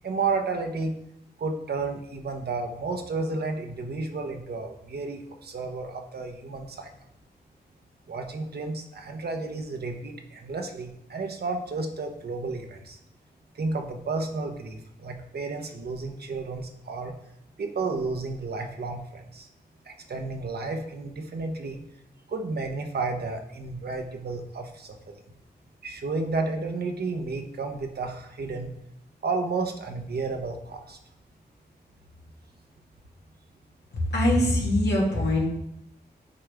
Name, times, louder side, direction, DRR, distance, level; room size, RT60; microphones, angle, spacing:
voice 1, 0.0-0.9 1.4-6.9 8.1-13.0 13.5-17.2 17.6-19.5 19.9-21.8 22.3-25.1 25.8-28.7 29.2-31.0, right 3 dB, 65° right, 4 dB, 1.0 m, -32 dB
voice 2, 34.1-35.5, left 1 dB, 80° left, -4 dB, 2.3 m, -22 dB
9.7 x 4.8 x 3.4 m, 0.81 s
wide cardioid pair, 100°, 17 cm